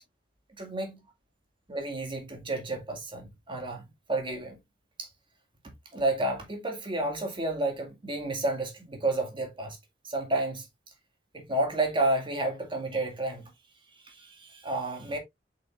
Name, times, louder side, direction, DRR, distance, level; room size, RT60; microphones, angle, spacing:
voice 1, 0.6-1.0 1.7-4.6 5.0-5.1 5.9-9.8 10.0-10.7 11.3-13.4 14.1-15.2, right 2 dB, 30° right, 2.1 m, -31 dB
7.4 x 5.4 x 2.5 m
head